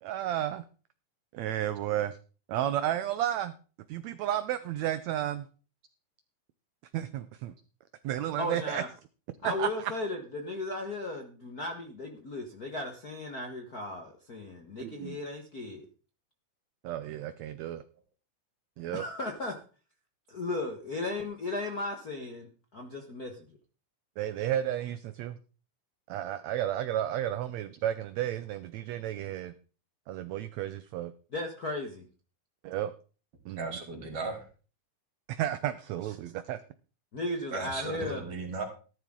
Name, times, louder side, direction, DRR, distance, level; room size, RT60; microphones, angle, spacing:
voice 1, 0.0-0.6 1.3-2.2 2.5-3.5 3.9-5.5 6.9-7.5 8.0-8.8 9.4-9.9 14.8-15.2 16.8-17.8 18.8-19.0 24.2-25.4 26.1-29.5 30.1-31.1 32.6-32.9 33.4-33.8 35.3-36.6, right 12 dB, 75° right, 12 dB, 1.7 m, -32 dB
voice 2, 8.4-8.9 9.4-15.9 18.9-19.6 20.3-23.5 31.3-32.1 37.1-38.2, left 2 dB, 45° left, 3 dB, 1.3 m, -36 dB
voice 3, 33.6-34.4 37.5-38.6, right 3 dB, 45° right, 3 dB, 3.5 m, -36 dB
14.0 x 12.5 x 3.8 m, 0.38 s
omnidirectional pair, 3.7 m